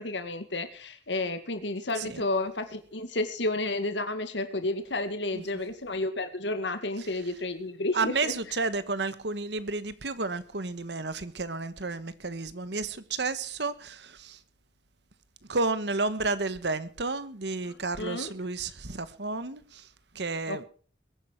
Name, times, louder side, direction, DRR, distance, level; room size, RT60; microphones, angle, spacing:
voice 1, 0.0-8.3 17.7-18.3 20.5-20.6, left 2 dB, 90° left, 2.1 m, -31 dB
voice 2, 7.9-14.4 15.5-19.9 20.1-20.6, right 3 dB, 70° right, 1.3 m, -31 dB
22.0 x 9.5 x 4.6 m
head